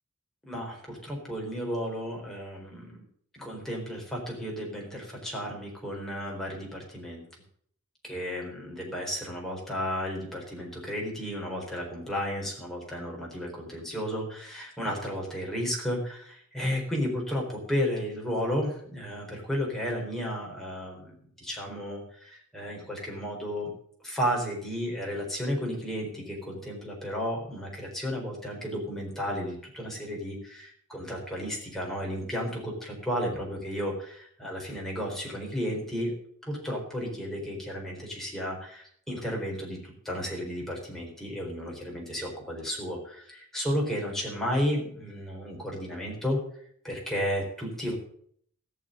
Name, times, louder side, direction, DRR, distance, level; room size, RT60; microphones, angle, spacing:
voice 1, 0.4-3.0 3.4-7.3 8.0-23.7 24.0-36.1 36.4-46.4 46.8-47.9, equal, ahead, -2 dB, 4.2 m, -33 dB
14.5 x 6.9 x 7.8 m, 0.63 s
head